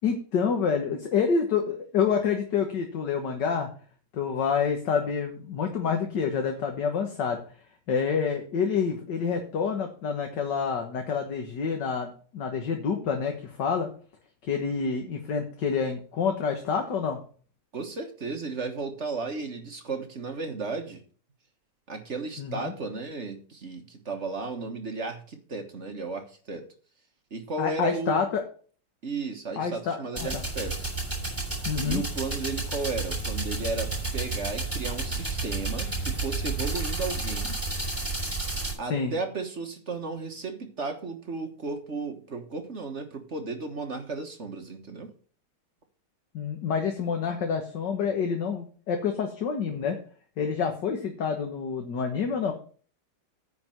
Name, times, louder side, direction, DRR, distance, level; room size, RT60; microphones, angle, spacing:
voice 1, 0.0-3.7 4.1-7.4 7.9-13.9 14.4-17.2 22.4-22.7 27.6-28.4 29.6-30.4 31.7-32.0 38.9-39.1 46.3-50.0 50.4-52.5, left 6 dB, 60° left, 4 dB, 1.9 m, -28 dB
voice 2, 17.7-21.0 21.9-26.7 27.3-28.2 29.0-30.8 31.8-37.6 38.8-45.1, right 3 dB, 40° right, 5 dB, 1.4 m, -34 dB
sound 1, 30.2-38.7, right 3 dB, 5° right, 5.6 m, -31 dB
9.6 x 5.2 x 7.6 m, 0.42 s
omnidirectional pair, 2.3 m